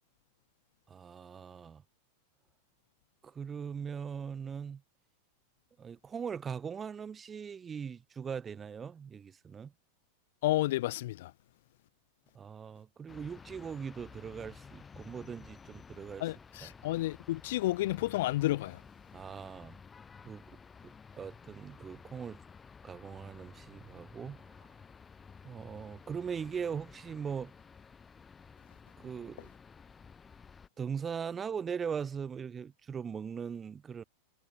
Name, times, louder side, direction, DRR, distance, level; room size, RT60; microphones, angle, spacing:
voice 1, 0.9-1.8 3.2-4.8 5.8-9.7 12.3-16.3 16.6-16.7 19.1-19.8 20.2-22.4 22.8-24.4 25.4-27.5 29.0-29.5 30.8-34.0, right 7 dB, 20° right, 4.3 m, -40 dB
voice 2, 10.4-11.3 16.2-18.8, left 16 dB, 55° left, 0.3 m, -31 dB
sound 1, 13.1-30.7, left 5 dB, 15° left, 3.1 m, -53 dB
figure-of-eight pair, 90°, 0 cm